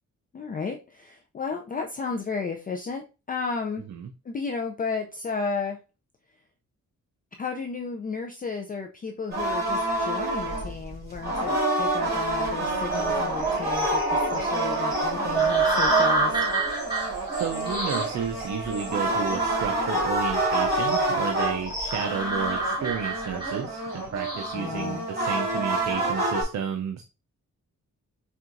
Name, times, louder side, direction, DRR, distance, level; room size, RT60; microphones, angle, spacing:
voice 1, 0.3-3.9 4.3-5.8 7.4-16.5 24.5-25.1, left 5 dB, 30° left, 3 dB, 0.4 m, -33 dB
sound 1, 9.3-26.4, right 1 dB, 30° right, 2.2 m, -28 dB
sound 2, 12.9-25.9, right 3 dB, 15° right, 1.4 m, -29 dB
voice 2, 17.3-27.0, right 7 dB, 60° right, 5 dB, 0.5 m, -32 dB
4.4 x 3.5 x 2.5 m, 0.31 s
wide cardioid pair, 150°, 31 cm